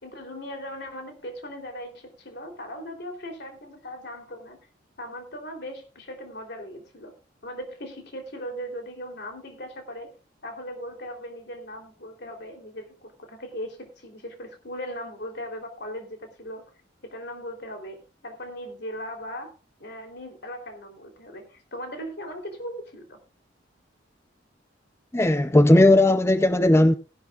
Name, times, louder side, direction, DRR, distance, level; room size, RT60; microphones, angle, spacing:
voice 1, 0.0-4.6 5.0-7.1 7.4-10.1 10.4-16.7 17.0-19.5 19.8-23.2, equal, 60° left, 3.4 m, -38 dB
voice 2, 25.1-26.9, left 1 dB, 15° left, 0.5 m, -17 dB
18.0 x 11.5 x 2.4 m
head